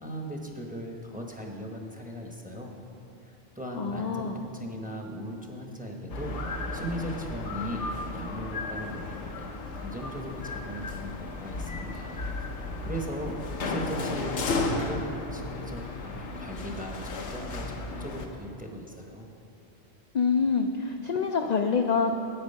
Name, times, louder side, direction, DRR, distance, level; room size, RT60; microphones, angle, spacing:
voice 1, 0.0-2.7 3.2-6.4 6.7-9.5 9.7-12.2 12.5-15.0 15.3-19.3, equal, 10° right, 1 dB, 0.8 m, -38 dB
voice 2, 3.7-4.4 20.1-22.2, left 5 dB, 60° left, 4 dB, 0.4 m, -26 dB
sound 1, 6.1-18.2, left 2 dB, 90° left, 1.2 m, -34 dB
8.9 x 8.8 x 5.4 m, 2.8 s
omnidirectional pair, 1.2 m